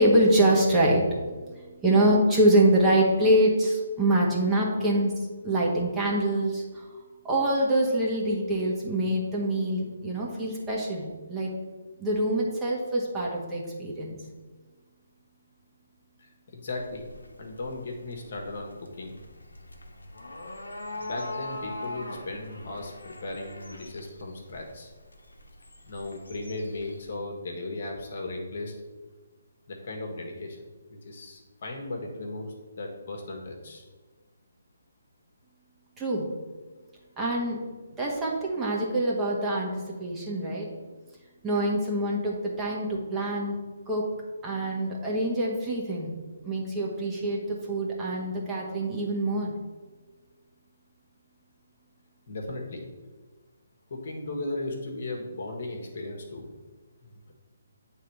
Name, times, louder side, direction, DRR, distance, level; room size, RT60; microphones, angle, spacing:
voice 1, 0.0-5.1 5.4-6.8 7.2-11.5 12.0-14.2 36.0-36.3 37.2-37.6 38.0-39.7 40.0-40.7 41.4-43.6 43.9-44.0 44.4-46.2 46.4-49.5, right 1 dB, 15° right, -4 dB, 1.3 m, -25 dB
voice 2, 16.2-17.1 17.4-19.1 21.0-24.9 25.9-28.7 29.7-30.6 30.9-33.9 52.3-52.9 53.9-56.5 57.0-57.3, left 2 dB, 55° left, 1 dB, 1.4 m, -36 dB
sound 1, 16.7-27.1, left 2 dB, 85° left, 1.0 m, -42 dB
8.2 x 3.6 x 4.6 m, 1.3 s
figure-of-eight pair, 145°, 0 cm